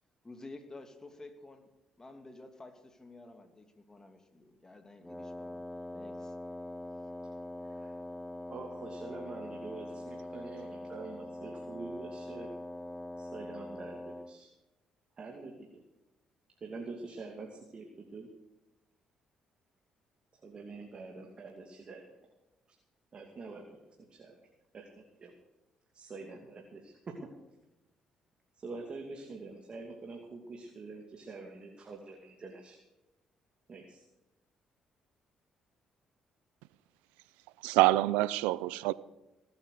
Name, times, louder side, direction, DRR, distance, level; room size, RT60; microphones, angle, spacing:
voice 1, 0.2-1.7 2.0-5.6 5.9-6.4, left 2 dB, 25° left, 2.6 m, -51 dB
Wind instrument woodwind instrument, 5.0-14.4, left 1 dB, 10° left, 1.0 m, -43 dB
voice 2, 8.5-12.5 13.2-14.5 15.2-15.7 16.6-18.3 20.3-22.2 23.1-24.4 24.7-25.3 25.9-27.3 28.5-32.8 33.7-34.0, right 3 dB, 45° right, 2.6 m, -46 dB
voice 3, 37.6-38.9, right 18 dB, 90° right, 0.5 m, -26 dB
19.5 x 8.9 x 6.7 m
supercardioid pair, 55°, 2 cm